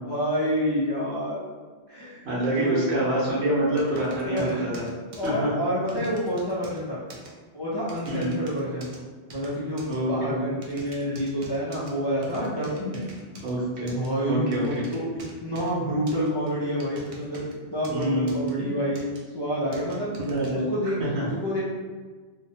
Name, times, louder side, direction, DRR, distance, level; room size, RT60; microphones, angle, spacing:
voice 1, 0.0-1.4 1.9-2.3 2.6-3.1 4.3-4.6 5.2-7.0 7.5-8.9 9.3-13.0 13.9-15.0 15.4-19.1 19.3-20.1 20.5-21.6, equal, 35° left, -9 dB, 0.4 m, -28 dB
voice 2, 2.2-4.9 5.2-5.5 8.1-8.3 9.9-10.4 13.4-13.9 14.3-14.8 17.9-18.7 20.2-20.7 21.0-21.2, right 1 dB, 85° right, -6 dB, 1.1 m, -26 dB
sound 1, 3.8-5.3 5.9-6.8 7.1-7.3 7.9-9.0 9.3-10.0 10.6-11.9 12.2-13.5 13.9-14.1 14.5-15.7 16.1-17.5 17.8-18.5 18.9-19.2 19.7-20.5, right 2 dB, 60° right, 0.3 m, -45 dB
2.8 x 2.1 x 2.6 m, 1.4 s
omnidirectional pair, 1.1 m